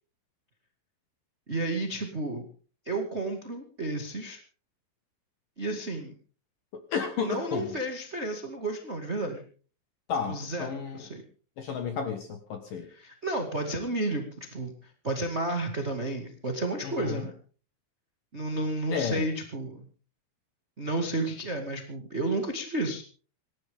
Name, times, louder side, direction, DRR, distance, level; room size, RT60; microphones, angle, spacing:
voice 1, 1.5-2.4 2.8-4.4 5.6-6.1 7.2-9.4 10.3-11.2 12.9-17.3 18.3-19.9 20.8-23.0, right 2 dB, 50° right, 3 dB, 0.8 m, -32 dB
voice 2, 6.7-7.8 10.1-11.0 11.6-12.9 16.8-17.3 18.9-19.2, left 6 dB, 60° left, 7 dB, 2.6 m, -32 dB
27.0 x 12.5 x 3.7 m, 0.41 s
omnidirectional pair, 5.3 m